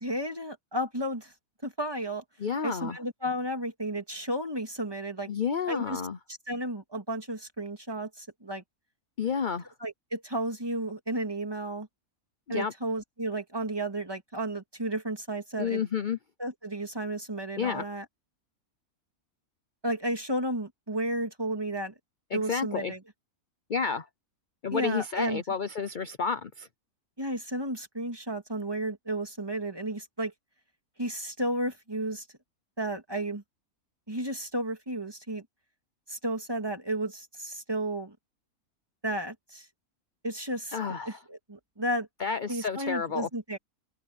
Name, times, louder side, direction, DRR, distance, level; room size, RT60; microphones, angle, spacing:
voice 1, 0.0-1.3 1.6-2.2 2.6-5.3 5.7-6.0 6.5-8.6 9.8-11.9 12.5-15.8 16.4-18.1 19.8-21.9 22.3-23.0 24.7-25.4 27.2-30.3 31.0-32.3 32.8-33.4 34.1-35.4 36.1-38.2 39.0-39.7 40.2-40.8 41.1-42.1 42.5-43.6, right 1 dB, 15° right, 2.2 m, -33 dB
voice 2, 2.4-3.0 5.3-6.2 9.2-9.7 12.5-12.7 15.6-16.2 17.6-17.8 22.3-22.9 23.7-24.1 24.6-26.7 40.7-41.2 42.2-43.3, left 6 dB, 40° left, 0.8 m, -30 dB
omnidirectional pair, 1.5 m